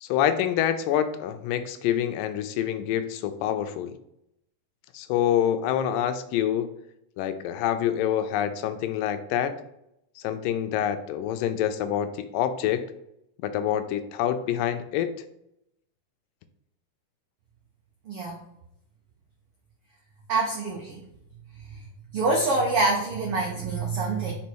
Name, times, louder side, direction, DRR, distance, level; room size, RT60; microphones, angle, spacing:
voice 1, 0.0-3.9 4.9-6.7 7.2-9.5 10.2-12.8 13.4-15.1, left 10 dB, 85° left, 10 dB, 2.2 m, -26 dB
voice 2, 18.1-18.4 20.3-21.0 22.1-24.3, right 3 dB, 85° right, 0 dB, 1.2 m, -25 dB
5.2 x 4.2 x 4.5 m, 0.78 s
omnidirectional pair, 3.8 m